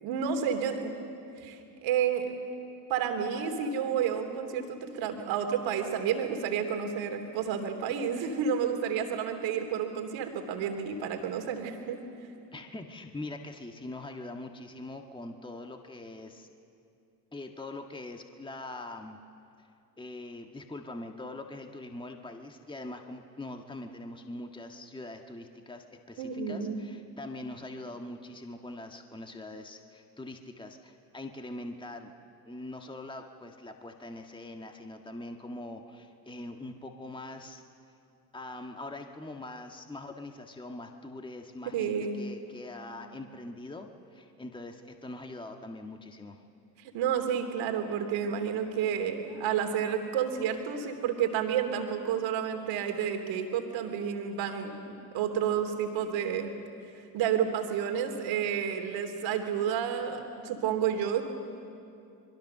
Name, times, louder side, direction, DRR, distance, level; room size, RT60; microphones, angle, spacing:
voice 1, 0.0-0.9 1.4-2.3 2.9-12.0 26.2-26.8 41.7-42.2 46.8-56.5 56.9-61.2, right 8 dB, 65° right, 5 dB, 3.1 m, -30 dB
voice 2, 12.5-16.5 17.3-19.2 20.0-32.1 32.5-37.6 38.3-46.4, left 2 dB, 10° left, 4 dB, 1.7 m, -43 dB
25.5 x 22.0 x 6.8 m, 2.6 s
hypercardioid pair, 70°, 49 cm